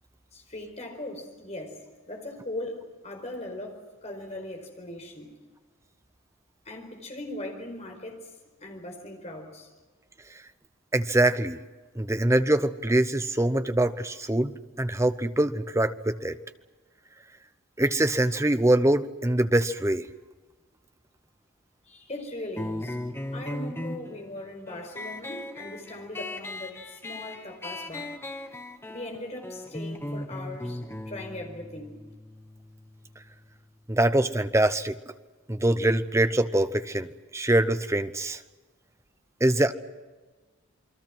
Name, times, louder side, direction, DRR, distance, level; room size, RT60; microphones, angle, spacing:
voice 1, 0.3-5.3 6.6-8.3 8.6-9.7 21.9-23.0 23.3-28.1 28.9-30.8 31.1-32.0, left 1 dB, 30° left, 3 dB, 4.7 m, -39 dB
voice 2, 10.9-11.6 12.0-14.5 14.8-16.4 17.8-20.1 33.9-35.0 35.5-37.1 37.3-38.4 39.4-39.7, right 1 dB, 15° right, 11 dB, 0.8 m, -23 dB
sound 1, 22.6-33.7, left 1 dB, 10° left, 1.2 m, -38 dB
28.5 x 23.0 x 6.1 m, 1.3 s
head